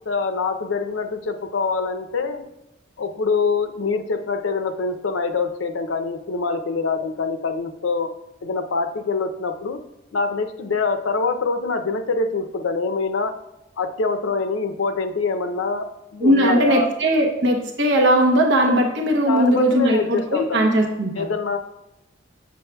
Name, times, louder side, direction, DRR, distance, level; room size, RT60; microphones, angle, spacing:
voice 1, 0.0-2.5 3.0-8.1 8.4-9.8 10.1-13.4 13.8-16.9 19.3-20.7 21.2-21.6, left 4 dB, 85° left, 7 dB, 0.5 m, -24 dB
voice 2, 16.2-21.2, right 1 dB, 65° right, 1 dB, 0.8 m, -19 dB
6.9 x 6.2 x 2.2 m, 0.92 s
head